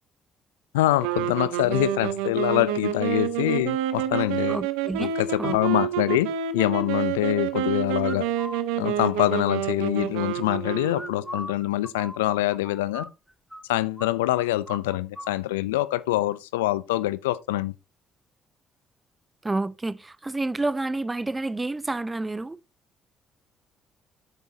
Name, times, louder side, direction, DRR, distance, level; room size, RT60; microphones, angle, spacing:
voice 1, 0.7-4.6 5.0-8.2 8.8-13.1 13.7-17.7, left 16 dB, 80° left, 0.5 m, -25 dB
sound 1, 1.0-11.4, right 10 dB, 75° right, 1.0 m, -28 dB
voice 2, 4.5-5.1 5.4-5.8 19.4-22.6, right 2 dB, 20° right, 0.7 m, -29 dB
sound 2, 8.0-8.6 10.9-13.6 14.0-14.1 14.4-15.3, equal, ahead, 1.3 m, -39 dB
10.0 x 8.3 x 2.8 m
hypercardioid pair, 45°, 0 cm